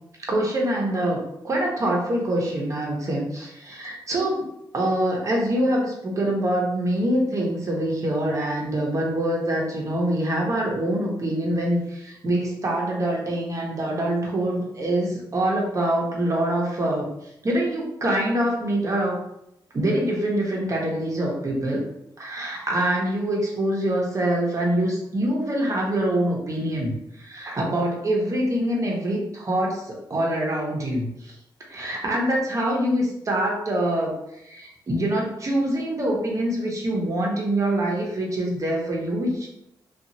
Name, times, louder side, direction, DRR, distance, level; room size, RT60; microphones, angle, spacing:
voice 1, 0.3-4.5 4.7-17.1 17.4-19.2 19.7-21.8 22.2-31.4 31.7-34.1 34.4-39.5, right 1 dB, 40° right, -1 dB, 0.8 m, -25 dB
2.8 x 2.4 x 2.7 m, 0.81 s
cardioid pair, 90°, 8 cm